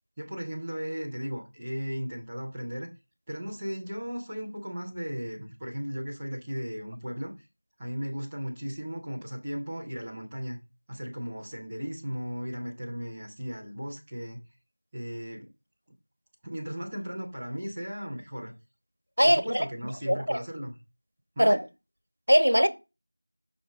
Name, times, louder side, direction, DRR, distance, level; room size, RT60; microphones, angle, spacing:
voice 1, 0.2-2.9 3.3-7.5 7.8-10.6 10.9-14.4 14.9-15.5 16.4-18.5 19.2-20.7 21.4-21.6, equal, 5° right, 0.7 m, -36 dB
voice 2, 19.2-19.7 20.1-20.4 21.4-21.6 22.3-22.7, equal, 65° right, 1.2 m, -21 dB
6.0 x 5.9 x 4.1 m
figure-of-eight pair, 180°, 0 cm